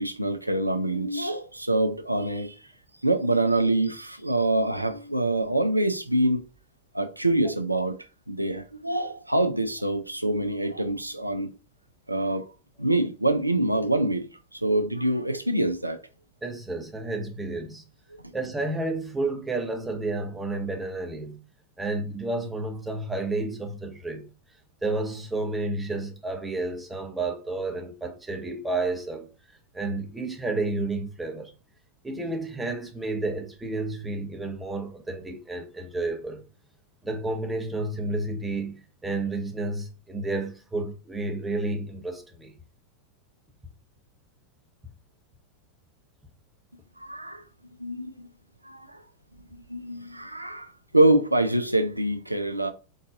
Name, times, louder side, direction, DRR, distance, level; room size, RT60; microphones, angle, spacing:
voice 1, 0.0-2.6 3.0-6.4 6.9-8.0 8.3-11.5 12.1-12.5 12.8-14.2 14.5-16.0 47.0-47.4 47.8-48.3 48.6-49.0 49.5-50.7 50.9-52.7, right 1 dB, 85° right, 0.4 m, -25 dB
voice 2, 16.4-17.8 18.3-21.4 21.8-24.2 24.8-29.3 29.7-31.5 32.0-36.4 37.0-42.5, right 2 dB, 10° right, 0.9 m, -31 dB
3.9 x 2.6 x 3.7 m
figure-of-eight pair, 90°, 0 cm